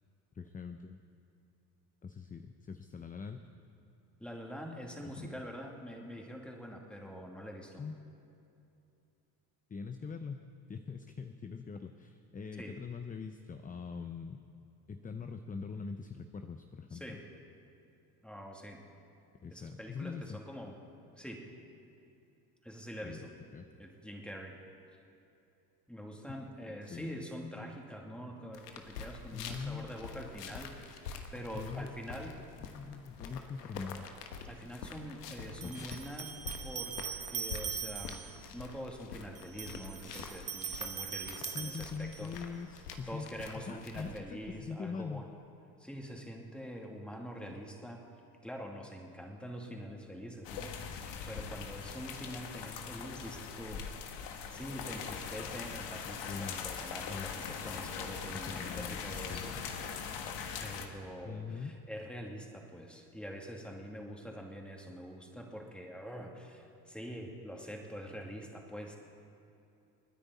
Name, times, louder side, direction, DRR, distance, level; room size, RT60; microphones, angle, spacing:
voice 1, 0.3-1.0 2.0-3.4 5.2-5.3 7.8-8.0 9.7-10.4 10.7-14.4 14.9-17.2 19.4-20.4 23.0-23.7 26.8-27.1 29.3-30.1 31.5-32.0 32.3-32.5 32.7-34.1 35.6-36.0 41.5-43.3 43.5-45.2 56.3-56.6 57.1-57.3 58.3-59.0 59.3-59.4 61.2-61.7, left 5 dB, 20° left, 7 dB, 0.6 m, -43 dB
voice 2, 4.2-7.8 12.6-12.8 16.9-17.3 18.2-18.9 19.5-20.8 21.2-21.5 22.6-23.3 23.8-24.6 25.9-32.4 34.4-36.4 36.6-37.0 37.3-38.2 38.5-42.3 43.1-45.3 45.8-48.1 48.4-50.8 51.3-53.9 54.3-59.6 60.6-69.0, equal, ahead, 0 dB, 2.6 m, -45 dB
sound 1, 28.5-44.2, left 5 dB, 90° left, 1.2 m, -47 dB
sound 2, 34.3-34.4 35.6-38.4 39.4-42.4, right 8 dB, 30° right, 1.0 m, -41 dB
sound 3, 50.4-60.9, left 6 dB, 65° left, 1.6 m, -41 dB
29.0 x 10.0 x 4.1 m, 2.7 s
hypercardioid pair, 70°, 47 cm